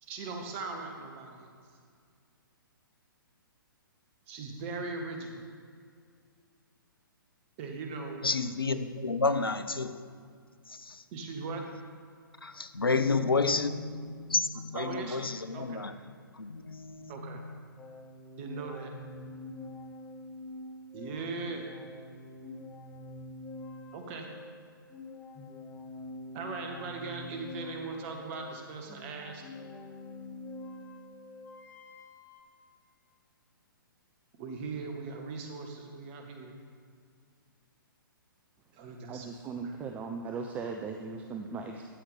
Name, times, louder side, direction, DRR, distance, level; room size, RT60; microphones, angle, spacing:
voice 1, 0.0-1.5 4.3-5.4 7.6-8.2 11.1-11.6 14.7-15.8 17.1-17.4 18.4-18.9 20.9-21.6 23.9-24.3 26.3-29.4 34.4-36.6 38.7-39.8, right 4 dB, 30° right, 1.2 m, -39 dB
voice 2, 8.2-10.0 10.7-11.0 12.4-15.9 16.4-17.2, left 4 dB, 80° left, 0.7 m, -30 dB
sound 1, 17.8-32.4, left 1 dB, 15° left, 1.1 m, -46 dB
voice 3, 39.1-41.9, right 4 dB, 10° right, 0.4 m, -38 dB
12.5 x 7.9 x 3.3 m
figure-of-eight pair, 125°, 12 cm